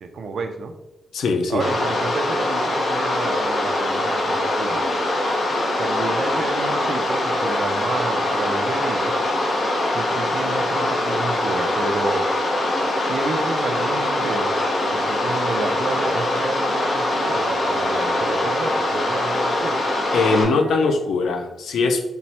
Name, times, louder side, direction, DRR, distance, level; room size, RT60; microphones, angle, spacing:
voice 1, 0.0-0.7 1.5-4.8 5.8-9.2 9.9-12.3 13.0-14.6 14.9-19.8, right 4 dB, 60° right, 6 dB, 0.4 m, -30 dB
voice 2, 1.1-1.6 20.1-22.0, left 4 dB, 80° left, 6 dB, 0.5 m, -21 dB
sound 1, 1.6-20.4, left 1 dB, 50° left, 0.8 m, -23 dB
sound 2, 4.4-20.9, equal, ahead, 0.9 m, -37 dB
4.4 x 2.1 x 4.1 m, 0.99 s
wide cardioid pair, 150°, 0 cm